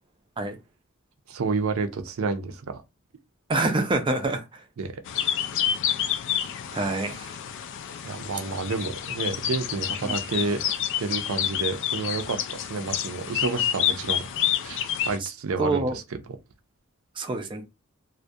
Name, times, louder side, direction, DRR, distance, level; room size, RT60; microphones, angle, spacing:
voice 1, 1.3-2.8 4.8-5.0 8.0-14.2 14.6-16.0, right 4 dB, 80° right, 0.5 m, -30 dB
voice 2, 3.5-4.6 6.7-7.3 10.0-10.2 15.2-15.3 15.6-16.0 17.2-17.6, right 2 dB, 25° right, 0.4 m, -26 dB
sound 1, 5.1-15.2, left 10 dB, 60° left, 0.3 m, -29 dB
2.3 x 2.1 x 2.6 m
head